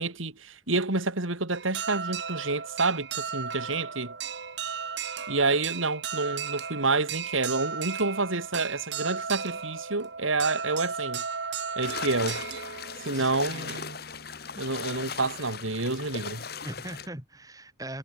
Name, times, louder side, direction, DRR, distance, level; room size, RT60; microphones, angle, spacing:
voice 1, 0.0-4.1 5.3-11.2 11.8-12.4 13.0-14.0 14.6-16.4, right 3 dB, 90° right, 2.9 m, -28 dB
sound 1, 1.5-14.2, right 6 dB, 60° right, 1.6 m, -35 dB
sound 2, 11.8-17.1, left 6 dB, 55° left, 2.2 m, -38 dB
voice 2, 13.1-13.8 16.6-18.0, right 1 dB, 20° right, 3.2 m, -40 dB
head